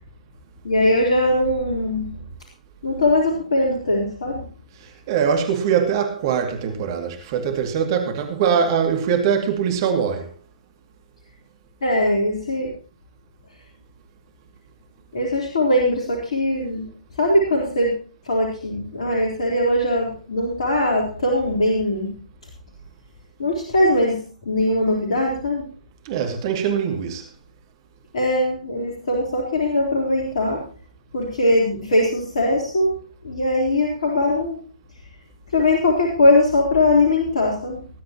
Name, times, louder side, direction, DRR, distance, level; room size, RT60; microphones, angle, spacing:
voice 1, 0.6-2.1 2.8-4.4 11.8-12.7 15.1-16.9 17.2-17.9 18.2-22.2 23.4-25.6 28.1-30.6 31.1-33.0 33.2-34.6 35.5-37.8, left 1 dB, 55° left, 3.9 m, -20 dB
voice 2, 4.8-10.3 26.0-27.2, right 7 dB, 35° right, 2.4 m, -22 dB
19.5 x 11.5 x 3.0 m
figure-of-eight pair, 125°, 4 cm